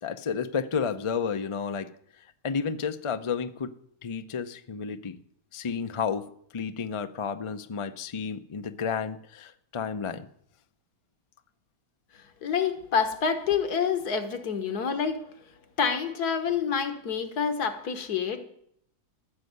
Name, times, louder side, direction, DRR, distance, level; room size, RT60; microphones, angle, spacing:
voice 1, 0.0-1.9 2.4-3.7 4.0-5.2 5.5-10.3, left 6 dB, 55° left, 0.3 m, -31 dB
voice 2, 12.4-15.3 15.8-18.4, left 6 dB, 75° left, 1.9 m, -27 dB
15.0 x 6.5 x 9.5 m
omnidirectional pair, 1.7 m